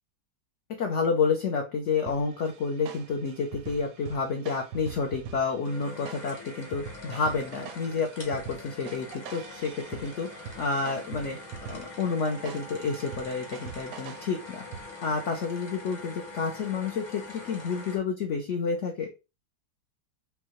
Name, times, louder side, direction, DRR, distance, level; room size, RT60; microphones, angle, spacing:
voice 1, 0.8-11.4 11.7-14.6 15.0-19.1, left 5 dB, 75° left, 2 dB, 0.6 m, -30 dB
sound 1, 2.1-15.2, right 7 dB, 70° right, 0.8 m, -45 dB
sound 2, 5.6-18.0, left 3 dB, 25° left, 0.6 m, -44 dB
5.4 x 2.1 x 2.9 m, 0.28 s
omnidirectional pair, 2.0 m